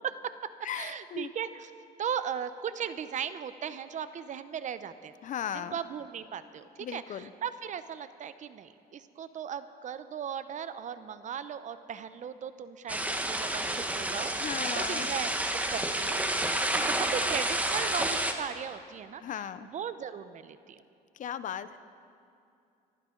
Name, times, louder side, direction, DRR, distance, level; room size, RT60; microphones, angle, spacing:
voice 1, 0.0-1.7 2.0-5.1 5.5-13.0 13.2-16.2 16.6-20.8, right 8 dB, 45° right, 12 dB, 0.7 m, -37 dB
voice 2, 0.6-1.3 5.2-5.7 6.8-7.3 14.4-15.1 19.2-19.7 21.1-21.8, left 9 dB, 50° left, 13 dB, 0.6 m, -37 dB
sound 1, 12.9-18.3, right 1 dB, 10° right, 1.2 m, -30 dB
24.5 x 15.0 x 3.9 m, 2.5 s
cardioid pair, 110°, 17 cm